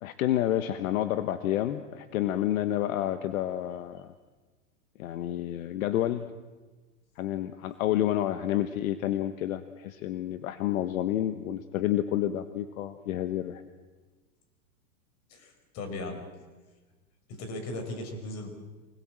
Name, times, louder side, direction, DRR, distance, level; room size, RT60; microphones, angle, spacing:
voice 1, 0.0-4.1 5.0-6.3 7.2-13.6, left 12 dB, 65° left, 11 dB, 1.3 m, -29 dB
voice 2, 15.3-16.2 17.3-18.5, left 2 dB, 35° left, 6 dB, 5.1 m, -37 dB
25.0 x 19.5 x 7.7 m, 1.3 s
hypercardioid pair, 140°, 45 cm